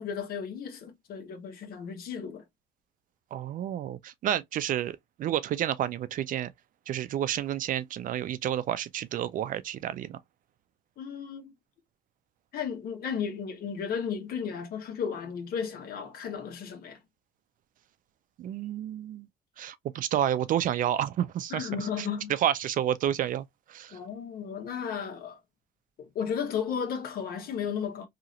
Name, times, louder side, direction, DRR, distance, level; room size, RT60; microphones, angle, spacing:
voice 1, 0.0-2.4 11.0-11.5 12.5-17.0 21.5-22.3 23.9-25.4 26.0-28.1, left 7 dB, 60° left, 1.0 m, -34 dB
voice 2, 3.3-6.5 6.9-10.2 18.4-19.3 19.6-21.7 22.0-22.1 22.4-24.0, right 11 dB, 55° right, 0.4 m, -30 dB
2.8 x 2.4 x 2.9 m
cardioid pair, 110°, 17 cm